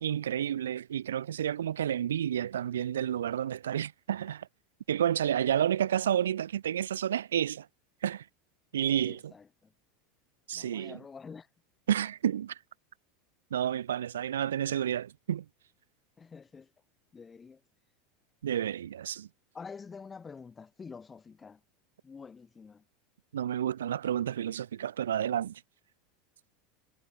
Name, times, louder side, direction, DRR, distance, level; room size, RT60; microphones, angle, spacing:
voice 1, 0.0-4.5 4.9-7.7 8.0-8.2 8.7-9.3 10.5-11.0 11.9-12.6 13.5-15.4 18.4-19.3 23.3-25.6, right 10 dB, 70° right, 0.4 m, -30 dB
voice 2, 9.0-9.7 10.5-11.5 16.2-16.7 17.1-17.6 19.5-21.6 22.0-22.8, left 5 dB, 20° left, 7.5 m, -47 dB
figure-of-eight pair, 80°, 0 cm